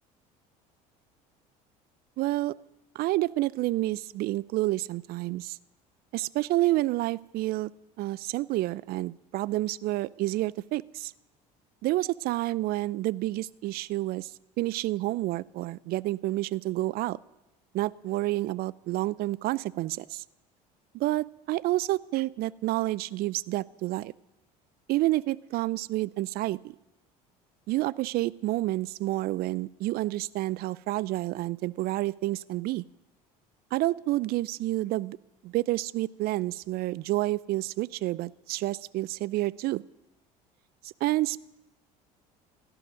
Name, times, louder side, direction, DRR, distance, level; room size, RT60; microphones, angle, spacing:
voice 1, 2.2-2.5 2.9-5.6 6.1-7.7 8.0-11.1 11.8-14.3 14.6-17.2 17.7-20.2 20.9-24.1 24.9-26.7 27.7-32.8 33.7-35.2 35.4-39.8 40.8-41.4, right 17 dB, 60° right, 22 dB, 0.5 m, -29 dB
16.5 x 12.0 x 6.4 m, 0.95 s
hypercardioid pair, 80°, 18 cm